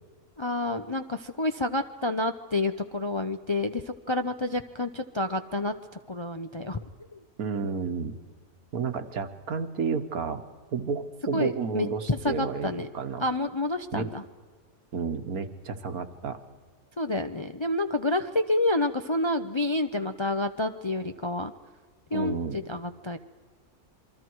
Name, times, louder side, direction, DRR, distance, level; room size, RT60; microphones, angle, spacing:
voice 1, 0.4-5.7 6.1-6.8 7.1-7.2 7.6-7.7 11.3-12.9 13.2-14.2 17.0-21.5 22.1-23.2, left 2 dB, 30° left, 7 dB, 0.5 m, -29 dB
voice 2, 7.4-8.2 8.7-10.5 10.7-13.3 13.9-14.1 14.9-16.4 22.1-22.6, right 5 dB, 75° right, 8 dB, 1.8 m, -31 dB
28.0 x 23.5 x 4.7 m, 1.5 s
omnidirectional pair, 1.5 m